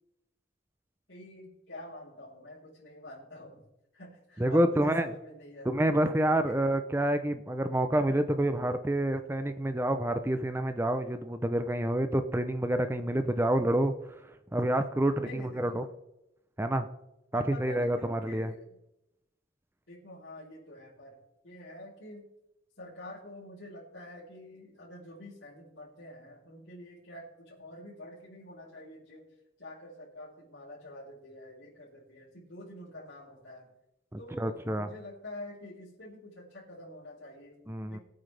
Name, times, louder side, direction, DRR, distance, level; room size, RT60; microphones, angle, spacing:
voice 1, 1.1-3.6 3.9-5.7 6.5-6.6 15.2-15.9 17.3-18.7 19.9-21.2 21.4-22.3 22.8-29.3 29.6-33.7 34.2-37.6 37.9-38.0, left 1 dB, 70° left, -10 dB, 4.1 m, -47 dB
voice 2, 4.4-5.1 5.6-13.9 14.5-15.9 16.6-16.9 17.3-18.5 34.1-34.9 37.7-38.0, right 1 dB, 15° right, 9 dB, 0.6 m, -28 dB
20.0 x 9.1 x 3.4 m, 0.89 s
head